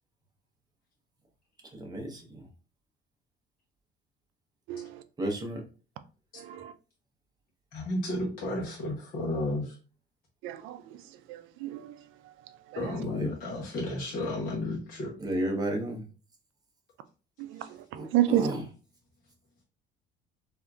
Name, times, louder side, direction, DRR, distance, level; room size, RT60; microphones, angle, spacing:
voice 1, 1.7-2.2 5.2-5.6 13.1-13.3 15.2-16.0 17.9-18.6, right 1 dB, 20° right, 0.8 m, -32 dB
voice 2, 7.7-9.7 12.8-15.1, left 1 dB, 45° left, 0.9 m, -32 dB
voice 3, 10.4-10.8 11.3-11.9 17.5-17.6 17.9-18.5, right 12 dB, 70° right, 0.4 m, -29 dB
3.6 x 2.6 x 2.3 m
cardioid pair, 130°, 21 cm